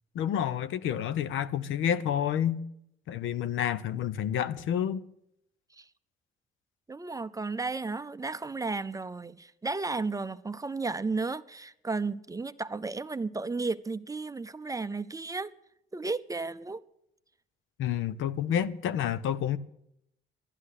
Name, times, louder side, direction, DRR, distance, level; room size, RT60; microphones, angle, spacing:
voice 1, 0.1-2.6 3.1-5.0 17.8-19.6, left 9 dB, 80° left, 0.8 m, -29 dB
voice 2, 6.9-15.5 15.9-16.8, right 3 dB, 15° right, 0.6 m, -33 dB
11.5 x 11.5 x 9.7 m
cardioid pair, 90°, 20 cm